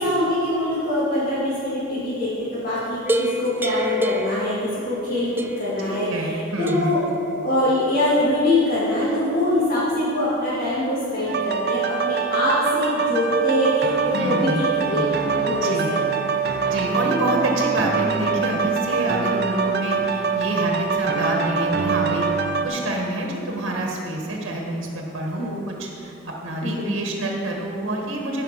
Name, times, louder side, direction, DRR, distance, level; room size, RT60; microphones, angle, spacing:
voice 1, 0.0-6.3 6.6-7.0 7.3-15.0 15.3-16.0 25.4-25.6 26.6-26.9, left 1 dB, 50° left, -12 dB, 2.7 m, -23 dB
sound 1, 3.0-5.1 5.4-5.8 6.7-7.1, equal, 10° right, 0.4 m, -27 dB
voice 2, 5.8-7.0 14.1-15.3 15.6-16.0 16.7-22.3 22.6-28.4, right 1 dB, 80° right, -1 dB, 1.5 m, -27 dB
sound 2, 11.3-22.7, right 5 dB, 55° right, 0.7 m, -24 dB
15.0 x 5.6 x 5.6 m, 2.8 s
head